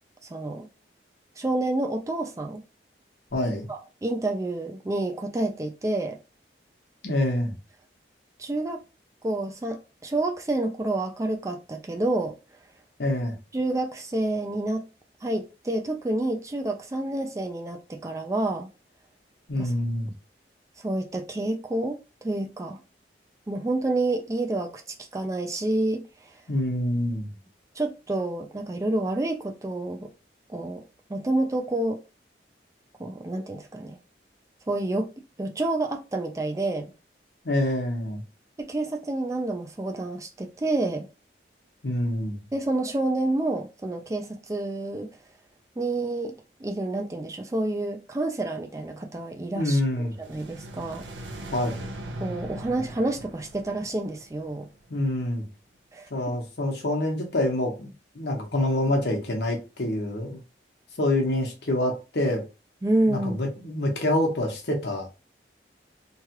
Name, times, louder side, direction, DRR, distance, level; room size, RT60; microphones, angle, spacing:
voice 1, 0.3-0.7 1.4-2.6 3.7-6.2 8.4-8.8 9.2-12.3 13.5-14.8 15.2-18.7 19.6-19.7 20.8-22.8 23.5-26.0 27.8-30.1 30.5-30.8 31.1-32.0 33.0-34.0 34.7-35.1 35.4-36.9 38.6-41.1 42.5-45.1 45.8-46.3 46.6-49.8 50.3-51.1 51.4-51.5 52.2-54.7 55.9-56.1 62.8-63.5, right 2 dB, 15° right, 0.3 m, -28 dB
voice 2, 3.3-3.7 7.0-7.5 13.0-13.4 19.5-20.1 26.5-27.3 37.4-38.2 41.8-42.4 49.5-50.1 51.5-51.9 54.9-55.4 56.1-57.9 58.1-60.4 61.0-62.4 63.1-65.1, left 1 dB, 70° left, 1.0 m, -26 dB
sound 1, 50.0-55.1, right 1 dB, 85° right, 0.7 m, -40 dB
3.1 x 2.4 x 2.9 m
head